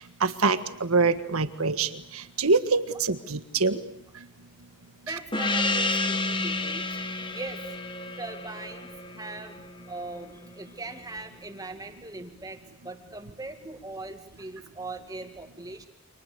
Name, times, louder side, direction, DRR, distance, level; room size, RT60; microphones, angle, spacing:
voice 1, 0.2-3.8, right 4 dB, 85° right, 11 dB, 1.7 m, -25 dB
voice 2, 5.1-6.8 7.3-7.6 8.2-9.6 9.9-15.9, right 2 dB, 15° right, 6 dB, 2.4 m, -40 dB
Gong, 5.3-10.3, left 2 dB, 20° left, 1.6 m, -30 dB
29.5 x 26.5 x 7.0 m, 0.74 s
head